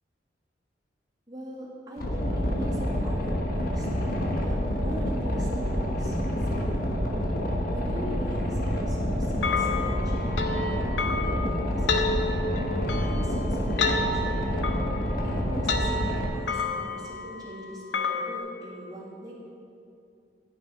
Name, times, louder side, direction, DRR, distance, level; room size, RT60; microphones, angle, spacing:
voice 1, 1.3-3.9 4.4-6.8 7.7-12.4 12.9-14.4 15.2-19.3, equal, 20° right, -6 dB, 1.9 m, -41 dB
Boat Water vehicle, 2.0-16.2, equal, 50° left, 1.1 m, -28 dB
sound 1, 9.4-18.4, left 4 dB, 85° left, 0.8 m, -30 dB
10.0 x 6.1 x 5.4 m, 2.5 s
head